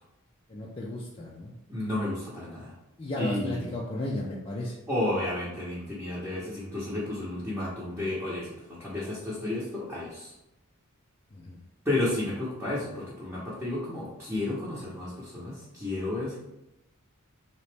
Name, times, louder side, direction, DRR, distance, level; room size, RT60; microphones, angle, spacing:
voice 1, 0.5-1.5 3.0-4.8 11.3-11.6, left 1 dB, 25° left, -4 dB, 0.5 m, -34 dB
voice 2, 1.7-2.7 3.2-3.7 4.9-10.3 11.8-16.4, left 1 dB, 10° right, -9 dB, 0.9 m, -32 dB
4.0 x 2.9 x 3.3 m, 0.90 s
head